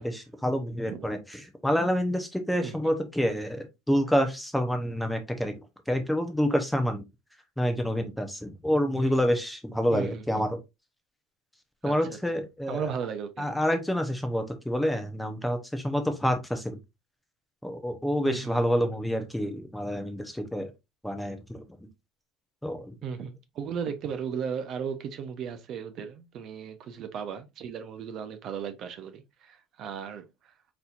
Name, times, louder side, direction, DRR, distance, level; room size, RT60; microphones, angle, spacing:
voice 1, 0.0-5.5 5.9-7.0 7.6-10.6 11.8-12.9 13.4-16.8 17.6-20.7 21.0-21.6 22.6-22.9, equal, ahead, 0.7 m, -28 dB
voice 2, 2.6-2.9 9.0-9.2 9.9-10.2 11.8-12.2 12.7-13.5 18.2-18.6 23.0-30.2, right 7 dB, 40° right, 0.6 m, -36 dB
4.2 x 4.2 x 2.5 m
cardioid pair, 160°, 0 cm